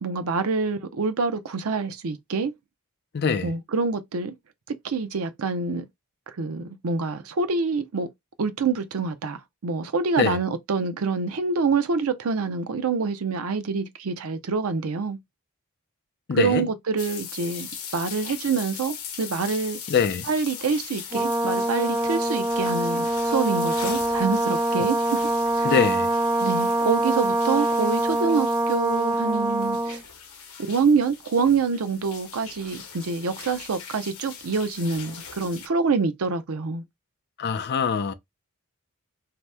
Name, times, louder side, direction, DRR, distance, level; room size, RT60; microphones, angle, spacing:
voice 1, 0.0-2.5 3.4-4.3 4.7-5.9 6.3-8.1 8.4-15.2 16.3-17.7 17.9-19.8 20.2-25.2 25.6-25.7 26.4-30.0 30.6-36.8, right 4 dB, 75° right, 0.5 m, -26 dB
voice 2, 3.1-3.5 10.2-10.4 16.3-16.6 19.9-20.3 25.6-26.1 37.4-38.1, left 6 dB, 50° left, 0.4 m, -23 dB
sound 1, 17.0-35.7, left 7 dB, 70° left, 0.8 m, -40 dB
Brass instrument, 21.1-30.0, right 1 dB, 15° right, 0.5 m, -24 dB
2.8 x 2.1 x 3.4 m
head